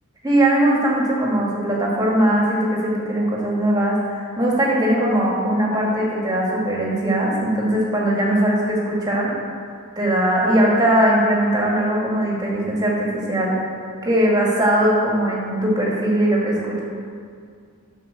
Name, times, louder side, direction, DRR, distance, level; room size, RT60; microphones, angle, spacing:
voice 1, 0.2-9.3 10.0-13.5 14.0-16.8, right 1 dB, 20° right, -4 dB, 1.8 m, -20 dB
8.7 x 5.5 x 6.7 m, 2.2 s
head